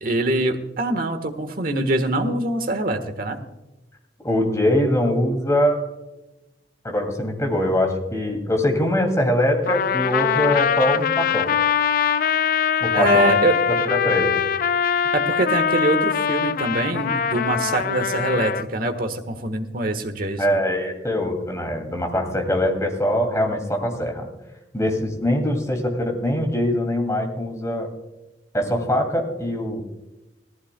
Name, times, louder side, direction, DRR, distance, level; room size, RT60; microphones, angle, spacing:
voice 1, 0.0-3.4 12.9-13.6 15.1-20.5, right 1 dB, 55° right, 7 dB, 1.4 m, -24 dB
voice 2, 4.2-5.8 6.8-11.6 12.8-13.3 13.9-14.4 20.4-24.3 24.7-27.9 28.5-29.8, left 1 dB, 15° left, 2 dB, 2.6 m, -22 dB
Trumpet, 9.7-18.7, left 7 dB, 50° left, 0.4 m, -22 dB
18.5 x 14.5 x 2.3 m, 1.0 s
head